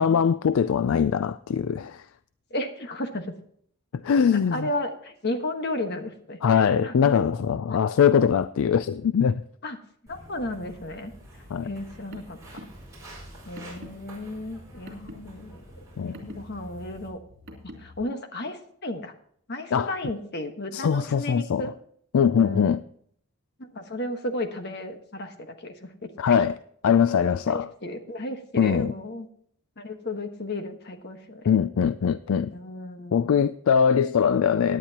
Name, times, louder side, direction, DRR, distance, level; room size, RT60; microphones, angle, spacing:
voice 1, 0.0-2.1 4.0-4.7 6.4-9.4 11.5-11.7 16.0-16.1 19.7-19.9 20.7-21.7 22.1-22.8 26.2-26.6 26.8-27.7 28.6-28.9 31.4-32.5 33.1-34.8, left 7 dB, 70° left, 0.3 m, -22 dB
voice 2, 2.5-3.3 4.5-7.1 7.7-7.8 9.6-9.8 10.1-11.1 11.6-12.4 13.4-15.6 16.0-17.2 17.6-19.1 19.5-21.7 22.4-22.8 23.6-26.4 27.5-29.3 29.8-31.4 32.5-33.4, left 1 dB, 50° left, 1.4 m, -34 dB
Walk footsteps, 10.1-17.1, right 1 dB, 15° right, 5.1 m, -47 dB
Car, 12.1-18.0, equal, 55° right, 3.4 m, -47 dB
17.0 x 10.0 x 2.9 m
head